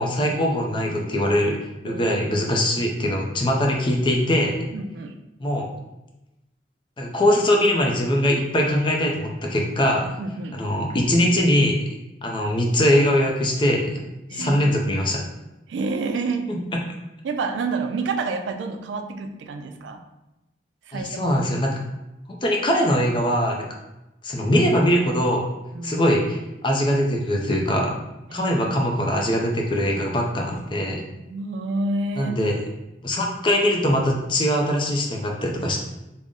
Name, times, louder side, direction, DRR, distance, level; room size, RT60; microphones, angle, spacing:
voice 1, 0.0-1.6 1.8-4.6 5.4-5.7 7.0-10.1 10.5-11.9 12.2-14.0 14.3-15.3 16.5-16.6 20.9-21.8 22.4-23.7 24.2-25.5 25.8-28.0 28.3-31.0 32.2-32.6 33.0-35.8, equal, 25° left, 0 dB, 0.4 m, -22 dB
voice 2, 1.8-2.4 4.7-5.1 10.2-10.6 14.3-14.7 15.7-16.5 17.2-20.0 20.9-21.3 25.7-26.0 28.3-28.5 31.3-32.4, right 3 dB, 85° right, 6 dB, 0.4 m, -29 dB
3.7 x 2.0 x 3.5 m, 0.96 s
head